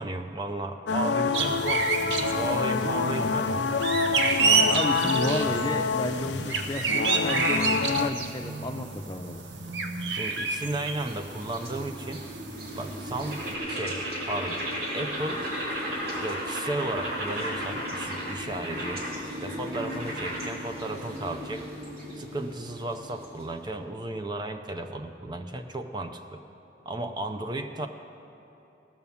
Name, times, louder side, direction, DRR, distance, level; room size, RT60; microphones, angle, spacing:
voice 1, 0.0-1.9 2.3-3.6 4.2-4.9 10.1-12.2 12.7-13.4 13.7-14.6 14.9-15.5 16.2-19.0 19.4-21.7 22.2-26.4 26.9-27.9, right 2 dB, 25° right, 6 dB, 0.5 m, -34 dB
sound 1, 0.9-8.1, left 5 dB, 80° left, 0.5 m, -27 dB
sound 2, 1.3-13.5, right 4 dB, 85° right, 0.9 m, -30 dB
voice 2, 2.8-3.4 4.4-9.4, left 1 dB, 25° left, 5 dB, 0.6 m, -32 dB
sound 3, 10.4-23.7, equal, 65° right, 2.7 m, -35 dB
17.0 x 5.8 x 7.1 m, 3.0 s
head